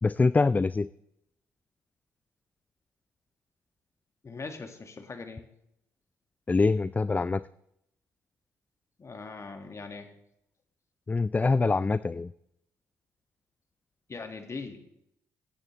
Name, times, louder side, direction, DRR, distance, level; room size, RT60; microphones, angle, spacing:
voice 1, 0.0-0.9 6.5-7.4 11.1-12.3, left 3 dB, 20° left, 17 dB, 0.3 m, -24 dB
voice 2, 4.2-5.5 9.0-10.1 14.1-14.8, left 4 dB, 40° left, 6 dB, 1.9 m, -40 dB
15.5 x 8.8 x 3.2 m, 0.76 s
hypercardioid pair, 55°, 8 cm